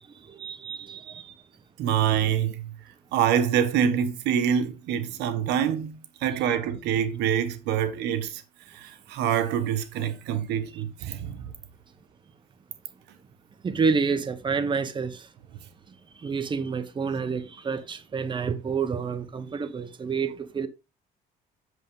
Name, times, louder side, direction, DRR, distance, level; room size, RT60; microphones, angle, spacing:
voice 1, 0.2-1.3 13.6-15.3 16.2-20.7, right 5 dB, 30° right, 1.1 m, -29 dB
voice 2, 1.8-2.7 3.1-8.4 8.7-11.5, right 9 dB, 90° right, 1.4 m, -26 dB
8.2 x 7.0 x 3.7 m
cardioid pair, 110°, 17 cm